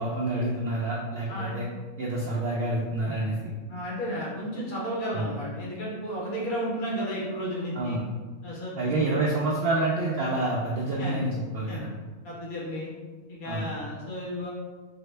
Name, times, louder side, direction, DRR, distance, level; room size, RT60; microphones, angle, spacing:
voice 1, 0.0-1.6 2.0-3.5 5.1-5.3 7.7-8.0 8.8-11.9 13.4-13.7, right 2 dB, 70° right, -5 dB, 0.5 m, -28 dB
voice 2, 3.7-8.0 8.4-9.4 11.0-11.2 11.7-11.8 12.2-12.9 13.3-14.5, equal, 75° left, -5 dB, 1.4 m, -33 dB
3.6 x 2.0 x 3.2 m, 1.4 s
omnidirectional pair, 1.5 m